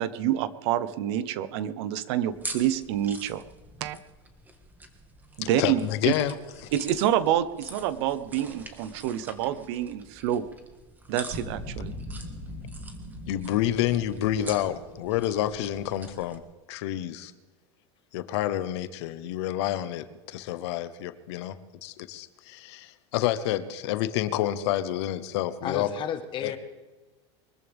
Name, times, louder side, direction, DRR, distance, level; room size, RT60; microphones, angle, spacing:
voice 1, 0.0-3.4 3.8-4.0 5.4-6.1 6.7-10.5 11.1-11.9, right 11 dB, 65° right, 14 dB, 1.0 m, -27 dB
sound 1, 2.3-16.4, right 2 dB, 10° right, 1.7 m, -45 dB
voice 2, 5.4-6.4 13.3-16.4 16.7-17.3 18.1-21.6 21.8-25.9 26.4-26.5, left 13 dB, 70° left, 13 dB, 1.1 m, -29 dB
sound 2, 7.8-9.7 11.3-15.8, equal, 35° right, 4.3 m, -42 dB
voice 3, 25.6-26.6, left 8 dB, 35° left, 8 dB, 1.5 m, -32 dB
23.5 x 14.5 x 3.6 m, 1.2 s
supercardioid pair, 140°, 15 cm